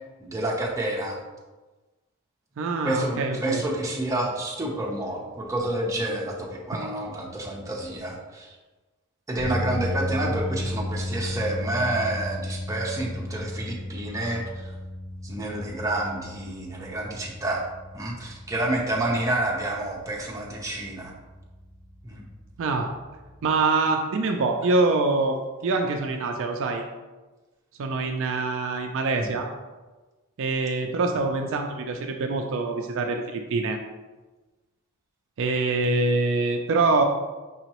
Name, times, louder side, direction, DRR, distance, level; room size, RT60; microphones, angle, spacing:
voice 1, 0.2-1.2 2.8-8.6 9.3-14.7 15.2-17.6 17.9-21.1 22.0-22.2 29.2-29.3, right 1 dB, 15° right, -3 dB, 0.7 m, -29 dB
voice 2, 2.6-3.6 22.6-22.9 23.4-25.4 25.6-26.8 27.8-29.5 30.4-33.8 35.4-37.0, right 3 dB, 60° right, 4 dB, 0.4 m, -24 dB
sound 1, 9.4-23.6, left 1 dB, 15° left, 1.3 m, -35 dB
5.4 x 2.9 x 2.9 m, 1.2 s
head